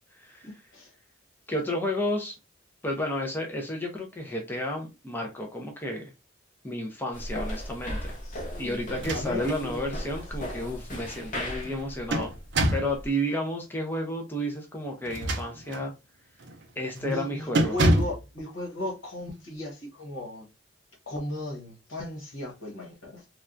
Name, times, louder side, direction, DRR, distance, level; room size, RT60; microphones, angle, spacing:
voice 1, 0.4-0.9 8.2-8.8 9.1-9.8 16.9-20.5 21.1-23.2, left 1 dB, 75° left, 1.2 m, -36 dB
voice 2, 1.5-2.4 2.8-6.1 6.6-8.2 8.6-12.3 12.7-15.9 16.8-17.8, left 1 dB, 10° left, 0.5 m, -31 dB
sound 1, 7.1-13.1, equal, 40° left, 0.8 m, -37 dB
sound 2, 8.9-9.6 10.1-10.2 11.6-13.0 15.0-15.9 16.4-16.6 17.0-17.2 17.5-18.2, right 1 dB, 60° right, 0.5 m, -26 dB
3.3 x 2.3 x 2.4 m
head